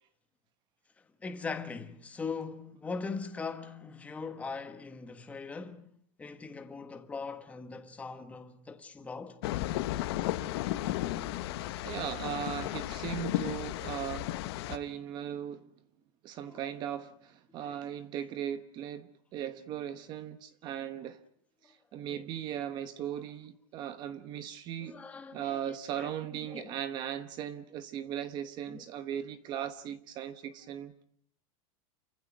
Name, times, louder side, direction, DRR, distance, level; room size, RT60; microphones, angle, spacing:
voice 1, 1.2-5.9 6.2-9.4 16.4-16.6 17.6-17.8 21.6-21.7 22.1-22.2 24.8-25.6 26.0-26.1 26.5-26.8 28.7-28.8, left 4 dB, 5° left, 1.3 m, -40 dB
sound 1, 9.4-14.8, left 15 dB, 45° left, 1.3 m, -34 dB
voice 2, 11.8-14.3 14.7-15.7 16.2-21.2 21.6-25.0 25.3-30.9, right 10 dB, 25° right, 1.0 m, -38 dB
29.0 x 15.0 x 9.5 m
supercardioid pair, 180°, 18 cm